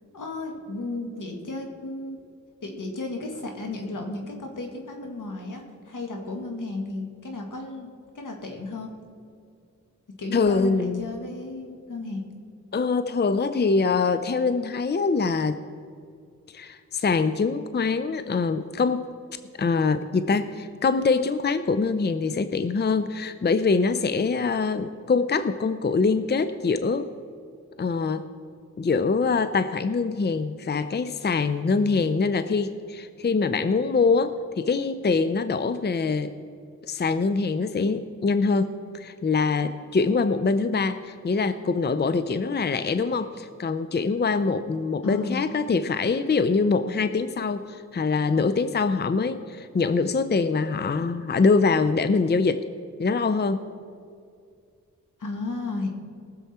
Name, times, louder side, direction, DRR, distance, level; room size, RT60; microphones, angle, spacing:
voice 1, 0.1-2.2 2.6-7.9 8.2-8.9 10.2-12.2 45.0-45.4 55.2-55.9, left 2 dB, 80° left, 2 dB, 1.9 m, -34 dB
voice 2, 10.3-11.0 12.7-15.6 16.5-19.0 19.6-27.1 27.8-28.3 28.8-36.3 36.9-52.6 53.0-53.6, left 4 dB, 35° left, 11 dB, 0.5 m, -24 dB
18.5 x 7.1 x 4.3 m, 2.3 s
cardioid pair, 50°, 31 cm